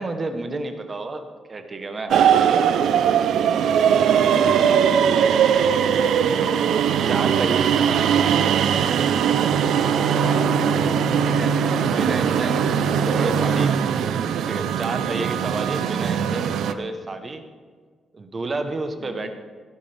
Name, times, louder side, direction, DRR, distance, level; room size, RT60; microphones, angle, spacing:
voice 1, 0.0-3.1 4.2-4.5 6.3-6.5 7.1-8.5 11.2-13.7 14.5-17.4 18.1-19.3, right 2 dB, 25° right, 7 dB, 0.9 m, -31 dB
sound 1, 2.1-16.7, right 8 dB, 80° right, 0.5 m, -20 dB
voice 2, 4.3-6.3 10.1-10.6 13.0-13.4 19.0-19.3, left 5 dB, 60° left, 7 dB, 1.1 m, -38 dB
17.0 x 11.0 x 3.4 m, 1.6 s
wide cardioid pair, 170°, 0 cm